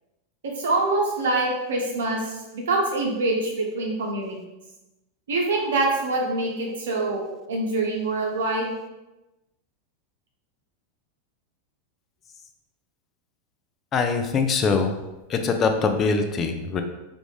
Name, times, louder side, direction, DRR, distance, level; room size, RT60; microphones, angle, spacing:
voice 1, 0.6-4.4 5.3-8.7, right 2 dB, 75° right, 0 dB, 0.9 m, -25 dB
voice 2, 13.9-15.0 15.3-16.8, left 4 dB, 35° left, 6 dB, 0.4 m, -23 dB
3.5 x 2.5 x 3.2 m, 1.0 s
hypercardioid pair, 95°, 0 cm